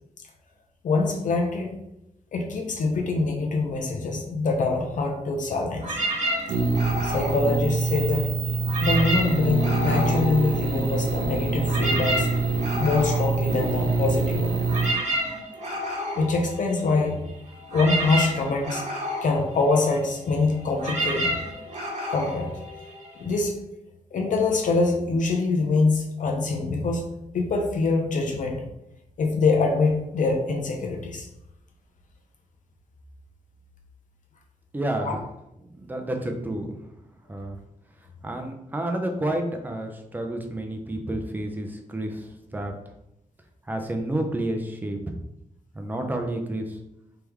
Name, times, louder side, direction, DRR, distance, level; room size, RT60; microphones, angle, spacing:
voice 1, 0.8-1.7 2.3-6.0 7.0-8.3 8.8-12.3 12.8-14.6 16.2-17.2 17.7-18.8 19.2-21.3 22.1-22.5 23.2-23.6 24.1-27.1 27.3-28.6 29.2-31.3 35.0-35.1, left 3 dB, 65° left, 2 dB, 0.6 m, -24 dB
sound 1, 5.8-8.2 8.6-11.1 11.4-23.3, equal, 55° right, 1.0 m, -31 dB
sound 2, 6.5-14.9, right 3 dB, 80° right, 0.7 m, -25 dB
voice 2, 34.7-35.2 35.7-36.8 37.3-37.6 38.2-42.7 43.7-45.0 45.7-46.8, right 1 dB, 15° right, 4 dB, 0.5 m, -30 dB
3.5 x 3.3 x 3.0 m, 0.85 s
wide cardioid pair, 180°, 14 cm